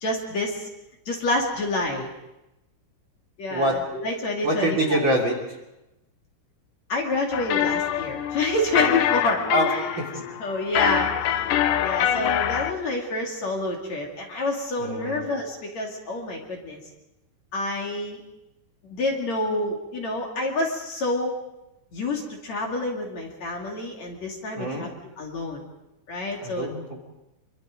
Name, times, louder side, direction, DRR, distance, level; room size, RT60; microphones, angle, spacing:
voice 1, 0.0-0.7 1.1-2.1 3.4-5.0 6.9-10.0 10.4-11.5 11.8-16.8 17.5-18.2 18.8-21.3 21.9-24.9 25.2-25.6 26.1-26.7, left 2 dB, 50° left, 0 dB, 3.6 m, -28 dB
voice 2, 4.4-5.6 9.5-10.2 14.8-15.2 24.6-24.9 26.4-27.0, right 1 dB, 35° right, 1 dB, 3.5 m, -25 dB
sound 1, 7.3-12.7, left 10 dB, 70° left, 2.5 m, -25 dB
26.0 x 24.0 x 5.2 m, 0.93 s
omnidirectional pair, 4.3 m